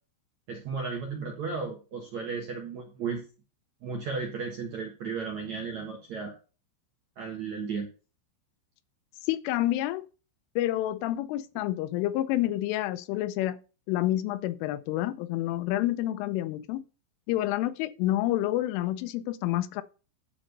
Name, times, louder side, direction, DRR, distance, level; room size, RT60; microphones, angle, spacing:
voice 1, 0.5-3.2 3.8-6.3 7.2-7.9, right 5 dB, 60° right, 1.9 m, -34 dB
voice 2, 9.3-10.0 10.6-13.6 13.9-16.8 17.3-19.8, left 14 dB, 90° left, 3.3 m, -28 dB
12.0 x 4.4 x 6.5 m
omnidirectional pair, 5.5 m